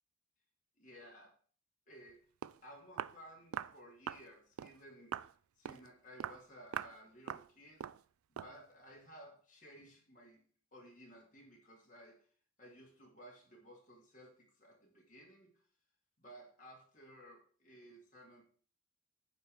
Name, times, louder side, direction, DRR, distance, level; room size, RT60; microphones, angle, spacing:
voice 1, 0.7-1.3 1.9-2.2 2.6-5.3 5.6-7.8 8.3-12.3 12.6-15.6 16.2-18.4, equal, 35° left, -1 dB, 2.4 m, -57 dB
Walk footsteps, 2.1-2.2 2.4-2.6 3.0-3.2 3.5-3.8 4.1-4.3 4.6-4.8 5.1-5.3 5.6-5.9 6.2-6.4 6.7-7.0 7.3-7.5 7.8-8.0 8.4-8.6, right 9 dB, 80° right, 0.3 m, -42 dB
9.2 x 3.4 x 6.6 m, 0.43 s
head